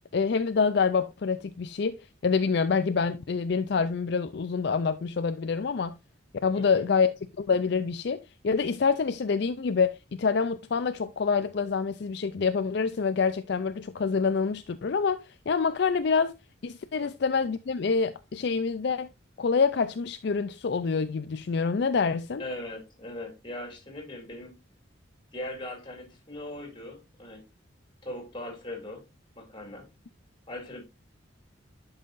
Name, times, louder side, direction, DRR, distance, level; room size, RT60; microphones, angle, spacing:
voice 1, 0.1-2.0 2.2-6.0 6.4-7.1 7.4-16.4 16.6-19.1 19.4-22.4, left 5 dB, 55° left, 0.4 m, -26 dB
voice 2, 6.5-6.9 17.0-17.1 22.4-24.6 25.3-27.4 28.0-29.0 29.4-29.9 30.5-30.8, left 1 dB, 25° left, 2.7 m, -40 dB
11.0 x 5.6 x 2.5 m
head